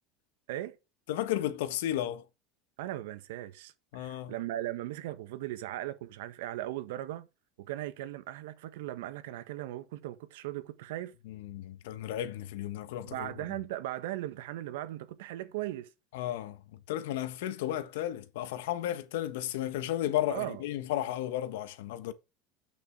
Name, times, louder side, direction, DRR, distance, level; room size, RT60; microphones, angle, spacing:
voice 1, 1.1-2.2 3.9-4.3 11.3-13.3 16.1-22.1, left 12 dB, 85° left, 1.4 m, -34 dB
voice 2, 2.8-7.3 7.6-11.2 13.0-15.9 20.3-20.6, right 14 dB, 85° right, 1.3 m, -38 dB
8.9 x 6.3 x 4.7 m
cardioid pair, 180°, 0 cm